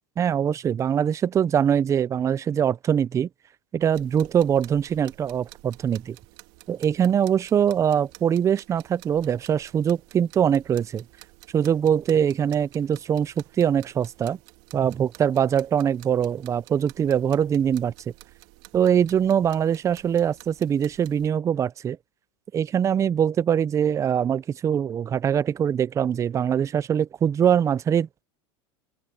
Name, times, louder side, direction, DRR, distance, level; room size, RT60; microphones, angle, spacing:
voice 1, 0.2-3.3 3.7-6.2 6.7-11.0 11.5-14.4 14.7-17.9 18.7-22.0 22.5-28.2, right 8 dB, 20° right, 0.5 m, -23 dB
sound 1, 3.8-21.3, right 22 dB, 55° right, 1.7 m, -51 dB
open air
supercardioid pair, 125°, 14 cm